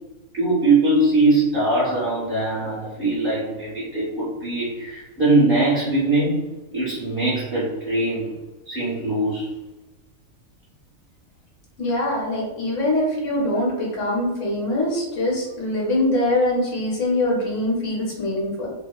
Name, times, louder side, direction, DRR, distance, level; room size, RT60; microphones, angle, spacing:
voice 1, 0.3-6.4 6.7-8.3 8.7-9.5, right 2 dB, 45° right, -11 dB, 1.0 m, -21 dB
voice 2, 11.8-18.7, left 1 dB, 65° left, -3 dB, 1.1 m, -23 dB
2.8 x 2.1 x 2.3 m, 1.1 s
omnidirectional pair, 1.4 m